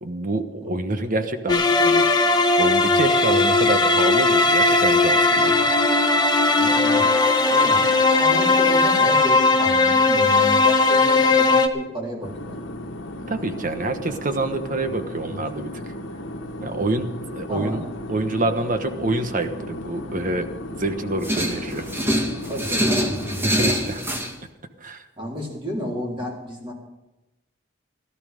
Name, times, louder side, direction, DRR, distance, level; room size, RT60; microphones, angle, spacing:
voice 1, 0.0-2.1 2.6-5.6 13.3-15.9 16.6-17.8 18.1-21.9 23.4-24.0 24.8-25.0, right 2 dB, 45° right, 8 dB, 1.2 m, -27 dB
sound 1, 1.5-11.7, left 3 dB, 25° left, 1.3 m, -18 dB
voice 2, 3.3-3.9 6.6-7.1 7.5-7.8 8.2-12.5 13.9-14.2 14.8-14.9 15.2-15.4 16.8-16.9 17.5-17.8 22.5-23.5 25.2-26.7, equal, 30° right, -3 dB, 4.1 m, -32 dB
sound 2, 12.2-23.4, left 1 dB, 80° left, 1.3 m, -35 dB
sound 3, 21.2-24.3, equal, 15° right, 1.6 m, -24 dB
17.5 x 12.5 x 5.3 m, 0.98 s
head